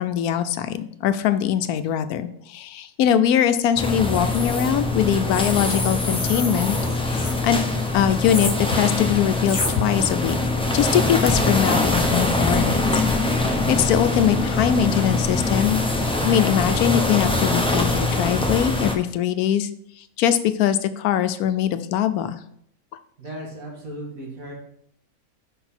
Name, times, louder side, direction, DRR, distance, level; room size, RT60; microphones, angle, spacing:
voice 1, 0.0-6.8 7.0-7.6 7.9-10.4 10.7-13.0 13.5-15.8 16.2-19.7 20.2-22.4, left 10 dB, 80° left, 11 dB, 1.0 m, -22 dB
sound 1, 3.8-18.9, left 2 dB, 10° left, 0.3 m, -23 dB
sound 2, 4.0-4.7 5.3-7.4 8.2-8.6 9.4-9.7, left 2 dB, 35° left, 1.5 m, -29 dB
voice 2, 23.2-24.5, right 1 dB, 65° right, -2 dB, 2.4 m, -36 dB
5.9 x 5.4 x 4.3 m, 0.69 s
omnidirectional pair, 1.6 m